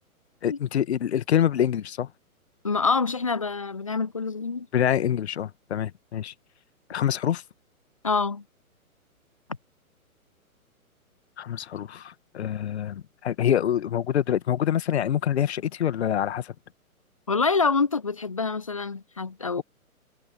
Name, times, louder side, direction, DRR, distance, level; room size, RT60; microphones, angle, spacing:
voice 1, 0.4-2.1 4.7-6.3 6.9-7.4 11.4-16.5, left 10 dB, 45° left, 1.7 m, -26 dB
voice 2, 2.6-4.7 8.0-8.4 17.3-19.6, left 4 dB, 25° left, 0.4 m, -26 dB
figure-of-eight pair, 125°, 44 cm